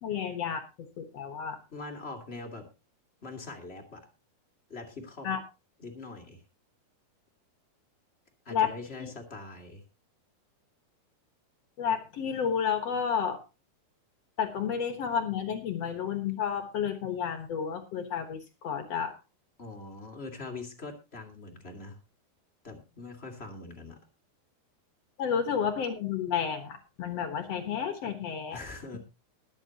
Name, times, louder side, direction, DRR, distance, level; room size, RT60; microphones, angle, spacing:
voice 1, 0.0-0.6 1.0-1.6 5.2-5.4 8.5-8.7 9.0-9.1 11.8-13.4 14.4-19.1 25.2-28.6, left 7 dB, 60° left, 6 dB, 1.8 m, -31 dB
voice 2, 1.7-2.7 3.2-4.1 4.7-5.3 5.8-6.4 8.4-9.8 19.6-22.0 22.6-24.0 28.5-29.0, left 3 dB, 25° left, 1 dB, 1.4 m, -42 dB
21.0 x 8.7 x 2.9 m, 0.27 s
omnidirectional pair, 4.5 m